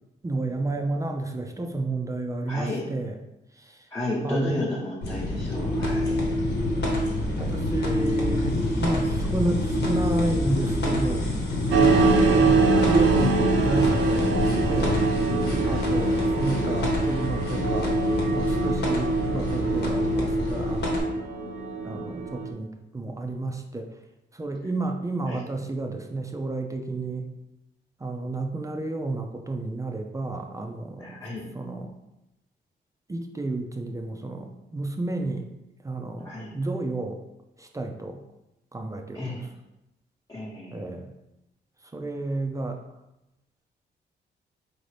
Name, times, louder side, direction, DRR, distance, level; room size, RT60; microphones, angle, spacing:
voice 1, 0.2-3.2 3.5-3.9 4.2-4.6 7.3-11.2 11.7-15.0 15.7-18.0 18.3-21.0 21.8-23.9 24.3-27.3 28.0-31.2 31.5-31.9 33.1-35.5 35.8-37.2 37.6-38.2 38.7-39.5 40.7-41.1 41.8-42.8, right 2 dB, 15° right, 3 dB, 0.4 m, -31 dB
voice 2, 2.5-2.8 3.9-6.2 11.9-12.2 15.6-15.9 25.3-25.4 31.0-31.5 36.2-36.5 39.1-39.5 40.3-40.8, left 2 dB, 15° left, -8 dB, 0.9 m, -33 dB
sound 1, 5.0-21.0, left 1 dB, 65° left, 1.1 m, -26 dB
sound 2, 11.7-22.5, right 4 dB, 80° right, 0.5 m, -25 dB
4.2 x 2.6 x 3.3 m, 0.92 s
cardioid pair, 90°, 19 cm